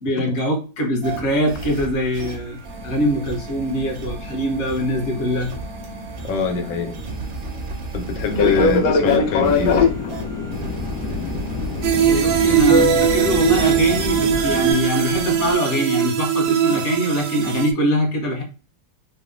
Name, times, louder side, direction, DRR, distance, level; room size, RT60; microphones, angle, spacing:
voice 1, 0.0-2.6 2.8-5.5 12.0-18.4, equal, 45° left, 1 dB, 1.1 m, -22 dB
sound 1, 1.0-15.6, right 2 dB, 70° right, 0.6 m, -32 dB
voice 2, 6.2-7.0 7.9-9.9, left 4 dB, 85° left, 5 dB, 1.4 m, -24 dB
Fixed-wing aircraft airplane, 8.3-14.7, left 3 dB, 65° left, 1.0 m, -22 dB
sound 2, 11.8-17.7, right 9 dB, 85° right, 1.3 m, -20 dB
3.2 x 2.1 x 3.6 m, 0.34 s
omnidirectional pair, 2.0 m